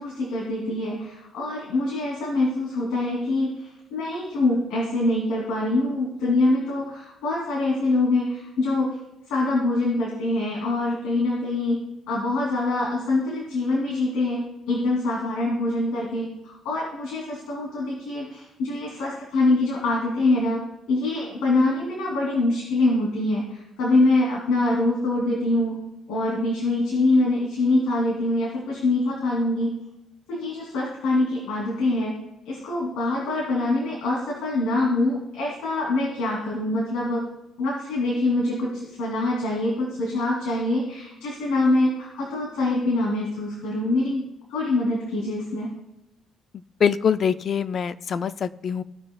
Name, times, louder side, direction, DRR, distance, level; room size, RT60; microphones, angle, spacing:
voice 1, 0.0-8.9 9.3-14.4 14.7-16.3 16.6-25.8 26.1-29.8 30.3-32.2 32.5-37.2 37.6-44.2 44.5-45.7, left 2 dB, 90° left, -4 dB, 2.8 m, -24 dB
voice 2, 46.8-48.8, left 7 dB, 50° left, 13 dB, 0.4 m, -24 dB
17.5 x 6.1 x 2.3 m, 0.90 s
cardioid pair, 105°, 0 cm